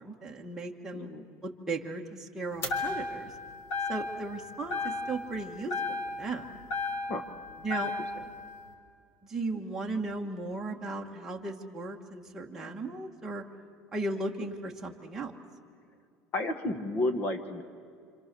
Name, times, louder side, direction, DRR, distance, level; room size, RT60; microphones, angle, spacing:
voice 1, 0.0-1.1 1.4-3.3 3.9-6.4 7.6-7.9 9.2-13.4 13.9-15.3, right 2 dB, 10° right, -1 dB, 1.5 m, -36 dB
voice 2, 0.9-1.2 7.1-7.3 16.3-17.6, left 2 dB, 30° left, 8 dB, 1.4 m, -31 dB
sound 1, 2.6-3.4 3.7-4.4 4.7-5.4 5.7-7.3 7.7-8.3, left 3 dB, 45° left, 3.4 m, -33 dB
29.5 x 26.0 x 6.9 m, 2.4 s
cardioid pair, 175°, 6 cm